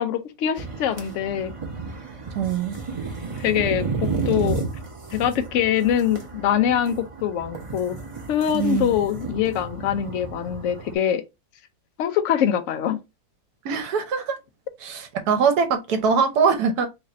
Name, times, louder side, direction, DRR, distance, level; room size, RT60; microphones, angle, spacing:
voice 1, 0.0-1.5 3.4-3.8 4.3-4.6 5.1-8.0 8.3-11.2 12.0-13.0, left 9 dB, 70° left, 0.7 m, -23 dB
sound 1, 0.6-10.9, right 4 dB, 30° right, 0.6 m, -32 dB
voice 2, 2.4-2.7 8.5-8.9 13.6-14.4 14.8-16.9, right 6 dB, 70° right, 1.3 m, -22 dB
3.2 x 2.5 x 4.1 m
omnidirectional pair, 1.8 m